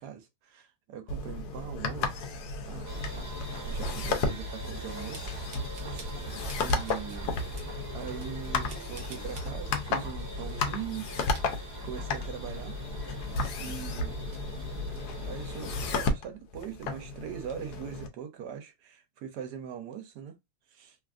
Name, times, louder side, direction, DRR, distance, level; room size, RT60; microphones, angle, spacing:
voice 1, 0.0-2.3 2.6-3.0 3.3-5.4 5.9-6.1 6.6-7.4 7.9-11.1 11.5-12.8 13.6-14.2 15.2-20.4 20.7-21.0, right 8 dB, 80° right, 1.2 m, -41 dB
sound 1, 1.1-18.1, left 3 dB, 85° left, 1.2 m, -34 dB
sound 2, 2.8-16.0, left 1 dB, 30° right, 1.1 m, -40 dB
sound 3, 5.1-6.2 6.5-7.2 7.6-7.7 8.2-9.5 10.1-10.8 11.1-12.3 12.6-12.7 13.1-15.0 15.4-15.9, right 4 dB, 60° right, 1.0 m, -51 dB
3.1 x 2.4 x 2.4 m
omnidirectional pair, 1.7 m